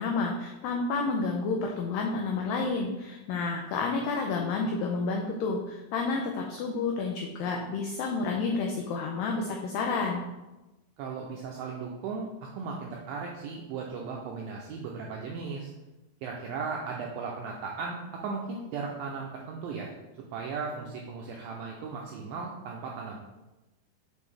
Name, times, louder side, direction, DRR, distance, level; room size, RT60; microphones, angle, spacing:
voice 1, 0.0-10.2, left 4 dB, 85° left, 1 dB, 2.0 m, -30 dB
voice 2, 11.0-15.7 16.2-19.9 20.3-23.2, right 5 dB, 90° right, -1 dB, 2.0 m, -36 dB
7.3 x 4.7 x 3.3 m, 1.0 s
omnidirectional pair, 4.8 m